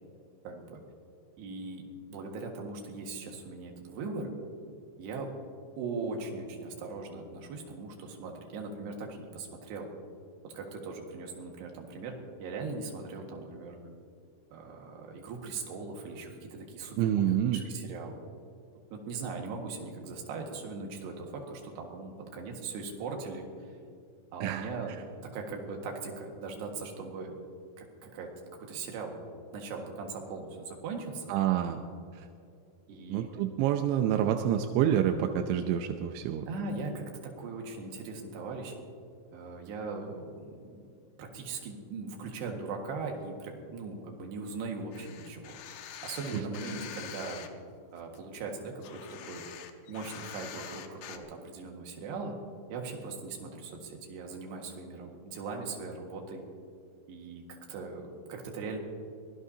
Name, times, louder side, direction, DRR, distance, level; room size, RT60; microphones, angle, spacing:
voice 1, 0.4-0.8 1.4-1.8 2.1-4.3 5.0-5.3 5.8-9.9 10.4-13.8 14.5-18.2 18.9-23.8 24.3-24.9 25.2-27.4 28.0-28.3 28.6-29.2 29.5-31.3 32.9-33.3 36.5-38.8 39.3-40.9 41.2-45.6 46.0-47.4 47.9-49.4 49.9-52.3 52.7-56.4 57.1-58.8, right 4 dB, 65° right, 1 dB, 3.4 m, -39 dB
voice 2, 17.0-17.6 24.4-25.0 31.3-31.8 32.1-32.3 33.1-36.5 46.3-46.4, right 10 dB, 80° right, 5 dB, 2.7 m, -28 dB
sound 1, 44.9-47.5 48.0-51.2, left 10 dB, 80° left, 2.6 m, -45 dB
23.0 x 19.0 x 2.8 m, 2.4 s
omnidirectional pair, 5.9 m